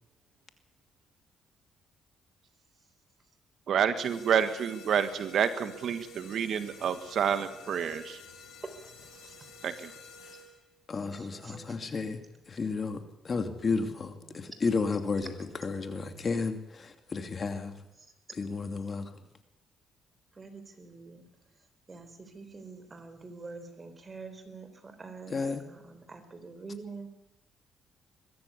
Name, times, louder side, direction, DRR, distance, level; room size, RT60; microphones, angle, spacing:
voice 1, 3.7-8.2 9.6-9.9, right 8 dB, 65° right, 1.5 m, -29 dB
sound 1, 4.0-10.7, left 2 dB, 85° left, 6.6 m, -50 dB
voice 2, 9.1-9.5 10.3-10.4 11.0-11.8 12.6-12.9 14.2-14.4 18.0-18.1 20.3-21.2 21.9-25.4 25.7-27.1, right 4 dB, 30° right, 3.8 m, -46 dB
voice 3, 10.9-15.3 15.6-17.8 18.4-19.2 25.3-25.6, left 4 dB, 40° left, 2.6 m, -32 dB
22.0 x 14.0 x 8.5 m
cardioid pair, 90°, 0 cm